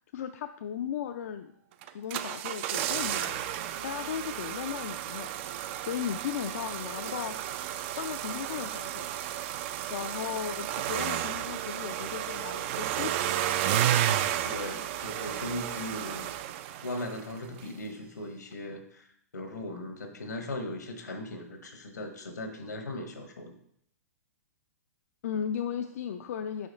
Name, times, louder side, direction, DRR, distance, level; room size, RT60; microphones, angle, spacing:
voice 1, 0.1-1.5 1.8-3.4 3.8-5.3 5.8-9.1 9.9-13.2 25.2-26.7, left 8 dB, 60° left, 6 dB, 0.4 m, -36 dB
sound 1, 1.8-17.3 17.6-17.7, right 11 dB, 45° right, 0.3 m, -32 dB
voice 2, 14.4-16.3 16.8-23.5, left 1 dB, 80° left, 5 dB, 1.1 m, -38 dB
4.9 x 4.9 x 4.0 m, 0.69 s
figure-of-eight pair, 110°, 9 cm